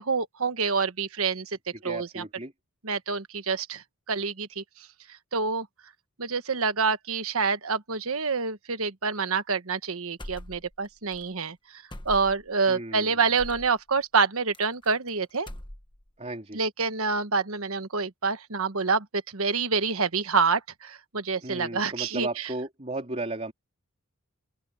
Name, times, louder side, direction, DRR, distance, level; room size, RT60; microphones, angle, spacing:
voice 1, 0.0-1.6 1.8-2.2 2.8-4.9 5.3-5.7 6.2-15.5 16.5-22.5, right 4 dB, 70° right, 1.3 m, -27 dB
voice 2, 1.7-2.5 12.7-13.2 16.2-16.6 21.4-23.5, right 2 dB, 30° right, 3.5 m, -35 dB
sound 1, 10.2-10.9 11.1-11.3 11.9-12.5 13.4-13.7 14.5-15.1 15.4-16.1, left 1 dB, 20° left, 1.4 m, -41 dB
open air
head